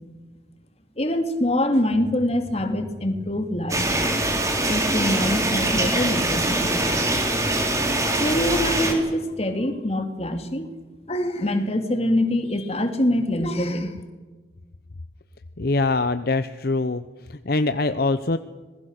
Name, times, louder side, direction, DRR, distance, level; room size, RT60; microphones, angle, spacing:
voice 1, 1.0-4.0 4.7-6.8 8.1-10.7 11.1-14.0, left 1 dB, 35° left, 6 dB, 2.6 m, -24 dB
sound 1, 3.7-8.9, right 1 dB, 20° right, 3.6 m, -23 dB
voice 2, 15.6-17.0 17.3-18.4, left 3 dB, 60° left, 11 dB, 0.8 m, -23 dB
26.5 x 21.0 x 6.6 m, 1.3 s
head